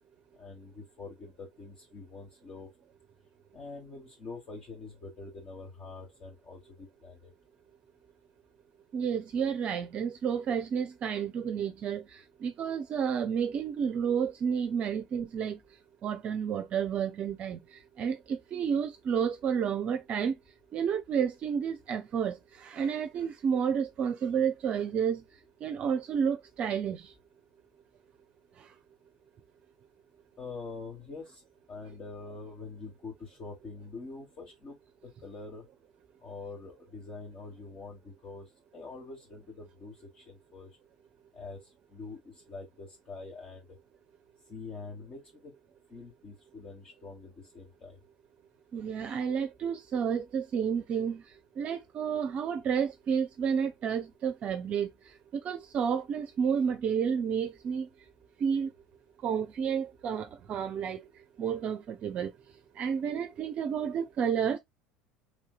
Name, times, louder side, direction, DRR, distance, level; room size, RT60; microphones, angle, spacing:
voice 1, 0.4-2.7 3.5-7.3 30.4-31.4 31.7-34.8 35.0-35.6 36.2-38.5 38.7-40.7 41.3-41.6 41.9-43.6 44.5-45.5 45.9-48.0, left 3 dB, 40° left, 1.3 m, -45 dB
voice 2, 8.9-15.6 16.0-20.4 20.7-25.2 25.6-27.1 28.6-28.7 48.7-51.2 51.6-57.9 58.4-58.7 59.2-61.1 61.4-62.3 62.8-64.6, right 7 dB, 45° right, 0.5 m, -31 dB
3.2 x 2.7 x 2.3 m
hypercardioid pair, 75°, 3 cm